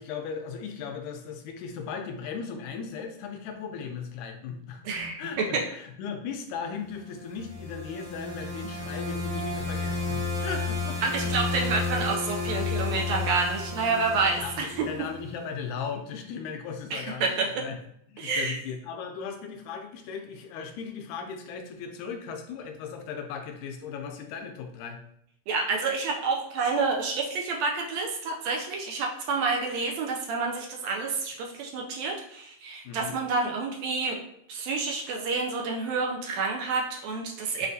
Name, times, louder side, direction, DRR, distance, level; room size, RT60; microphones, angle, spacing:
voice 1, 0.0-4.8 5.2-11.3 14.4-17.8 18.1-25.0 32.9-33.2, left 6 dB, 85° left, 5 dB, 2.0 m, -37 dB
voice 2, 4.8-5.6 11.0-14.9 16.9-17.6 18.2-18.6 25.5-34.2 34.5-37.7, right 4 dB, 80° right, 0 dB, 1.7 m, -29 dB
sound 1, 7.1-15.3, left 3 dB, 45° left, 1.9 m, -32 dB
6.2 x 2.4 x 2.6 m, 0.72 s
omnidirectional pair, 3.4 m